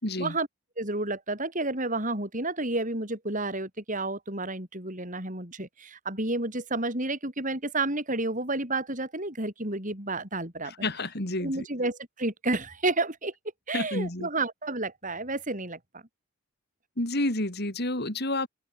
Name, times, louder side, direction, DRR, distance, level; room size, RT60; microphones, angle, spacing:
voice 1, 0.0-0.3 10.8-11.6 13.7-14.3 17.0-18.5, left 1 dB, 50° left, 4.5 m, -29 dB
voice 2, 0.8-10.7 11.4-13.3 13.7-16.0, right 2 dB, 40° right, 7.5 m, -31 dB
open air
head